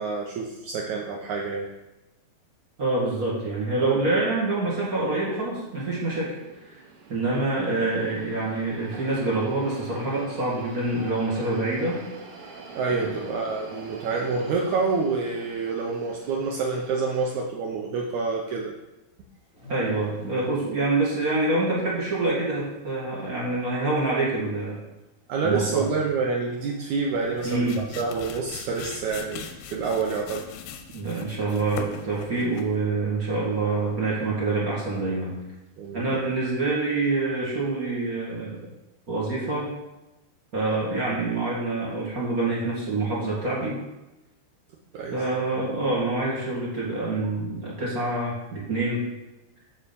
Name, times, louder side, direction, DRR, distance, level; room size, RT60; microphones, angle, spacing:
voice 1, 0.0-1.7 12.7-18.7 25.3-30.4 35.8-36.3 44.9-45.1, right 4 dB, 85° right, 0 dB, 1.6 m, -28 dB
voice 2, 2.8-6.3 6.6-6.8 7.1-12.0 12.9-13.1 19.7-24.8 25.4-25.8 27.4-27.8 30.9-35.3 35.9-38.6 39.1-39.7 40.5-43.8 45.1-49.0, right 2 dB, 35° right, -5 dB, 1.4 m, -26 dB
sound 1, 5.1-17.4, right 4 dB, 65° right, 2.9 m, -45 dB
sound 2, 19.3-21.0 21.3-21.6 22.1-22.2 23.1-23.2 23.5-23.6 24.4-24.6 25.7-26.1 26.4-28.0 28.3-28.5 29.0-29.5 29.9-30.0 30.2-30.3 30.7-30.8 31.8-31.9 32.2-32.5 32.7-32.9 33.2-34.9 35.2-35.3, right 1 dB, ahead, 2.3 m, -47 dB
sound 3, 27.0-32.8, left 8 dB, 80° left, 2.4 m, -41 dB
8.3 x 4.9 x 6.9 m, 0.99 s
omnidirectional pair, 4.6 m